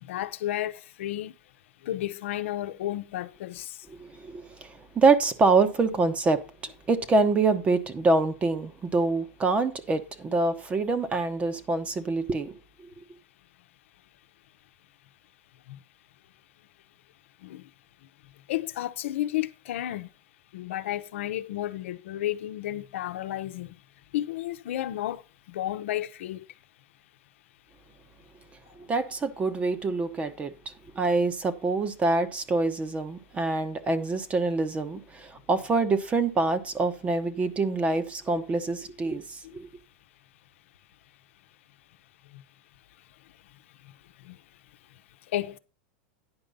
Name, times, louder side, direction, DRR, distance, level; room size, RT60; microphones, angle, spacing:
voice 1, 0.0-1.3 1.8-3.8 15.7-15.8 17.4-17.7 18.5-20.1 20.5-23.8 24.1-25.2 25.5-26.4 44.2-44.4 45.3-45.6, left 13 dB, 80° left, 0.9 m, -32 dB
voice 2, 4.0-12.6 28.8-30.5 30.9-39.7, right 3 dB, 20° right, 1.1 m, -25 dB
9.8 x 5.2 x 5.4 m
supercardioid pair, 135°, 7 cm